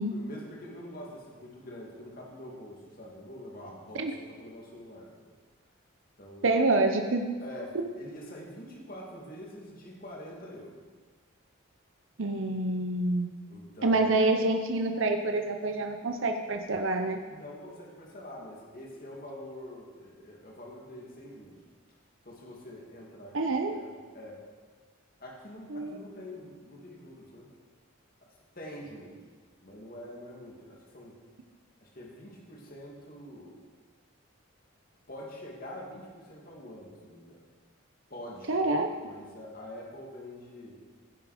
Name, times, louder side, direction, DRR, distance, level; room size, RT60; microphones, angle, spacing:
voice 1, 0.0-5.3 6.2-6.5 7.4-10.7 13.5-14.2 17.3-21.6 22.2-23.9 24.1-24.4 25.2-27.5 28.6-29.2 29.6-31.2 31.8-33.6 35.1-37.5 38.1-40.8, left 1 dB, 45° left, -2 dB, 2.4 m, -45 dB
voice 2, 6.4-7.3 12.2-13.3 13.8-17.2 23.3-23.8 25.7-26.0 38.5-38.9, right 2 dB, 70° right, 5 dB, 0.8 m, -27 dB
16.0 x 7.3 x 5.0 m, 1.5 s
head